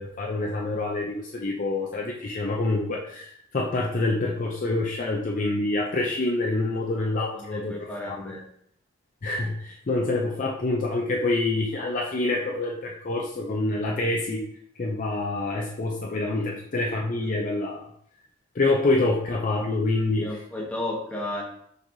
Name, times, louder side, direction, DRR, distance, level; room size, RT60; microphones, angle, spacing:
voice 1, 0.0-8.2 9.2-14.4 14.8-17.8 18.5-20.4, left 2 dB, 40° left, -1 dB, 0.4 m, -26 dB
voice 2, 7.4-8.4 16.3-16.5 20.2-21.4, left 1 dB, 5° left, -4 dB, 0.9 m, -33 dB
5.9 x 3.3 x 2.6 m, 0.69 s
head